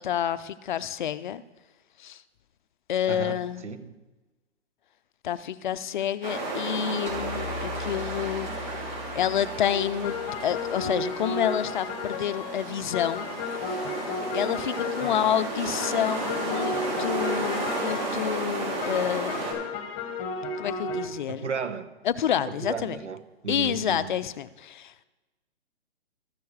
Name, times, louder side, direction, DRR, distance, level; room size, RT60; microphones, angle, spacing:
voice 1, 0.0-1.4 2.0-2.2 2.9-3.6 5.2-8.7 9.1-10.2 10.4-13.3 14.3-19.6 20.6-21.5 22.0-23.0 23.5-25.0, left 10 dB, 45° left, 15 dB, 0.5 m, -29 dB
voice 2, 3.1-3.4 3.6-3.9 15.1-15.2 21.3-21.9 22.5-24.2, right 5 dB, 90° right, 10 dB, 1.3 m, -34 dB
sound 1, 6.2-19.5, right 2 dB, 55° right, 4.5 m, -33 dB
sound 2, 7.1-11.5, left 2 dB, 75° right, 3.2 m, -41 dB
sound 3, 9.6-21.1, left 3 dB, 25° left, 1.3 m, -33 dB
13.5 x 7.0 x 4.8 m, 1.2 s
hypercardioid pair, 145°, 34 cm